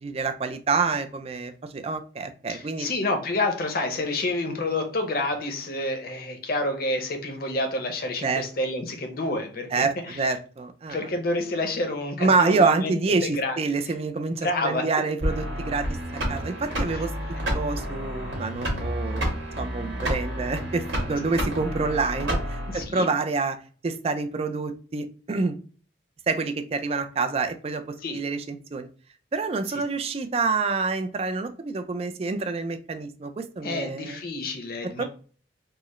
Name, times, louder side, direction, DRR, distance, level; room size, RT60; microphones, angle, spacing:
voice 1, 0.0-2.9 8.2-8.4 9.7-11.0 12.2-15.9 16.3-19.3 19.6-23.6 23.8-25.6 26.3-28.9 29.3-34.2 34.8-35.0, right 4 dB, 30° right, 9 dB, 0.3 m, -27 dB
voice 2, 2.5-10.2 10.9-13.6 14.4-14.9 16.9-17.0 21.1-21.2 22.7-23.1 28.0-28.2 33.6-35.0, left 2 dB, 50° left, 6 dB, 0.7 m, -29 dB
sound 1, 15.2-22.8, equal, 80° right, 1.7 m, -30 dB
4.5 x 2.0 x 3.0 m, 0.41 s
head